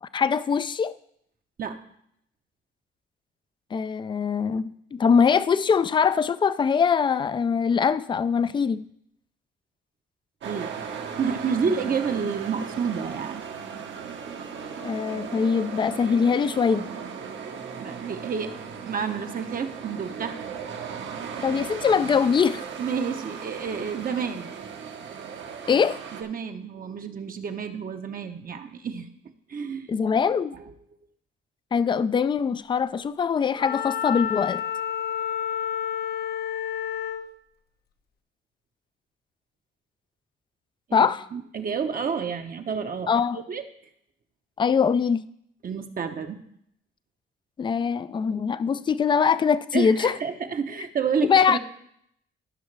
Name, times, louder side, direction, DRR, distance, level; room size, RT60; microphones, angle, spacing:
voice 1, 0.0-0.9 3.7-8.8 14.8-16.9 21.4-22.6 25.7-26.0 29.9-30.6 31.7-34.6 40.9-41.2 43.1-43.4 44.6-45.2 47.6-50.2 51.2-51.6, left 6 dB, 25° left, 15 dB, 0.4 m, -22 dB
sound 1, 10.4-26.2, right 6 dB, 70° right, 1.2 m, -37 dB
voice 2, 11.2-13.4 17.8-18.5 18.8-20.4 22.8-24.5 26.1-29.1 29.5-29.9 30.5-30.6 40.9-43.6 45.6-46.4 49.7-51.6, right 6 dB, 45° right, 5 dB, 0.8 m, -30 dB
Wind instrument woodwind instrument, 33.6-37.3, left 9 dB, 50° left, 0.7 m, -30 dB
15.0 x 5.7 x 3.2 m, 0.72 s
cardioid pair, 90°, 20 cm